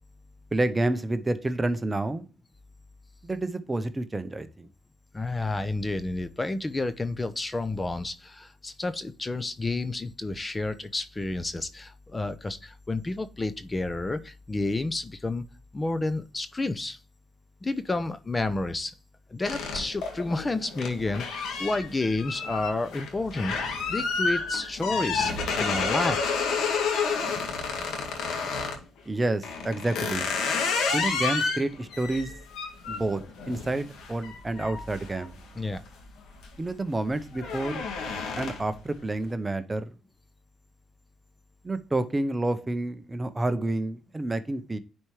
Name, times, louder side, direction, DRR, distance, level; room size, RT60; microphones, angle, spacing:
voice 1, 0.5-2.2 3.2-4.7 29.1-30.3 30.9-32.3 32.9-33.2 33.5-35.4 36.6-37.8 38.4-39.9 41.6-44.8, right 2 dB, 20° right, 10 dB, 0.7 m, -29 dB
voice 2, 5.1-15.4 15.7-17.0 17.6-18.9 19.3-23.6 23.9-25.3 25.6-26.5 35.5-35.8, left 2 dB, 20° left, 12 dB, 0.7 m, -30 dB
sound 1, 19.4-28.8 29.4-35.9 36.3-36.6 37.0-38.8, left 4 dB, 80° left, 1.8 m, -30 dB
9.8 x 4.4 x 3.2 m, 0.34 s
cardioid pair, 90°, 0 cm